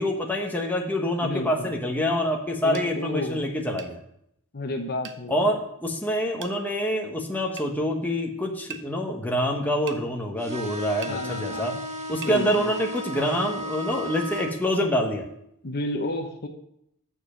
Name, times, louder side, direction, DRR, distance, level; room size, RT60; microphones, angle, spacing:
voice 1, 0.0-4.0 5.3-11.7 12.1-15.3, equal, 10° left, 0 dB, 1.2 m, -26 dB
voice 2, 1.2-1.7 2.6-3.5 4.5-5.3 11.1-11.9 12.2-12.7 15.6-16.5, left 1 dB, 45° left, 4 dB, 0.9 m, -31 dB
sound 1, 2.7-2.9 3.8-4.0 5.0-5.2 6.4-6.6 7.6-7.7 8.7-8.9 9.9-10.0 11.0-11.2 12.2-12.4, right 7 dB, 55° right, 0.9 m, -39 dB
sound 2, 10.4-14.5, equal, 30° right, 1.3 m, -34 dB
9.7 x 6.9 x 5.1 m, 0.74 s
head